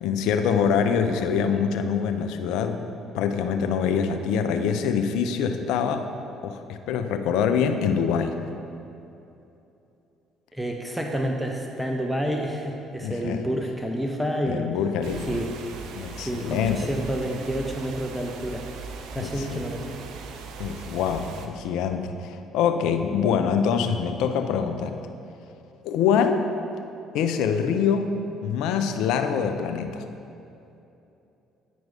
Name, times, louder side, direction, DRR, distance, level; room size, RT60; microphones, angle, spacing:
voice 1, 0.0-2.8 3.1-6.1 6.4-8.4 13.0-13.4 14.4-15.4 16.0-16.9 19.2-19.6 20.6-25.0 25.8-26.5 27.1-28.2 28.4-30.0, left 7 dB, 70° left, 7 dB, 0.5 m, -25 dB
voice 2, 10.5-14.7 15.3-15.5 16.1-18.6 19.1-20.0, equal, 5° right, 1 dB, 0.8 m, -29 dB
sound 1, 15.0-21.5, right 5 dB, 65° right, 0.6 m, -39 dB
9.2 x 4.7 x 5.3 m, 2.8 s
hypercardioid pair, 55°, 0 cm